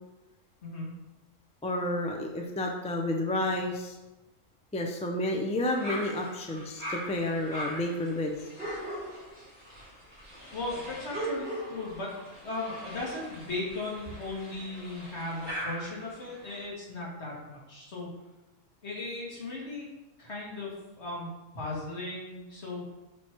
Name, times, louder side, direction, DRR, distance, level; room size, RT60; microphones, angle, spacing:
voice 1, 1.6-4.0 4.7-8.5, left 1 dB, 10° left, 1 dB, 0.3 m, -30 dB
sound 1, 5.6-16.6, right 1 dB, 40° right, 2.0 m, -40 dB
voice 2, 10.5-12.1 12.4-18.1 18.8-19.9 20.2-21.3 21.5-22.8, left 2 dB, 60° left, -4 dB, 2.0 m, -37 dB
5.8 x 4.6 x 4.5 m, 1.0 s
omnidirectional pair, 1.3 m